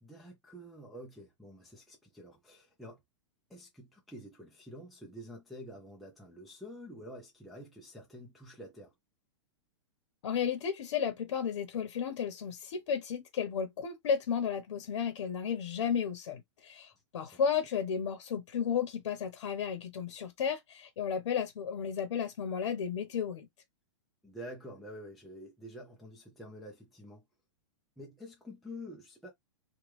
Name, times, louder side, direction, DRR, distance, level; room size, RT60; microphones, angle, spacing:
voice 1, 0.0-3.0 3.5-8.9 17.2-17.4 24.2-27.2 28.0-29.3, equal, ahead, 0.4 m, -48 dB
voice 2, 10.2-23.5, left 7 dB, 65° left, 0.9 m, -33 dB
3.1 x 2.3 x 3.1 m
hypercardioid pair, 160°, 16 cm